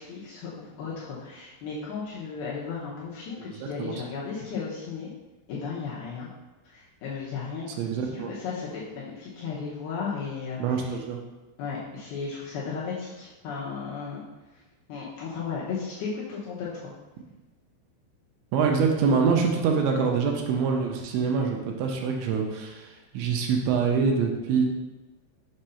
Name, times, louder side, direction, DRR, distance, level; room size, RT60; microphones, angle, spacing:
voice 1, 0.0-5.1 5.5-6.3 6.7-10.9 11.6-14.2 14.9-16.9, left 5 dB, 75° left, -7 dB, 2.4 m, -35 dB
voice 2, 3.4-4.0 7.8-8.3 10.6-11.2 18.5-24.7, right 5 dB, 80° right, 1 dB, 3.0 m, -25 dB
7.5 x 2.6 x 5.5 m, 1.2 s
omnidirectional pair, 5.3 m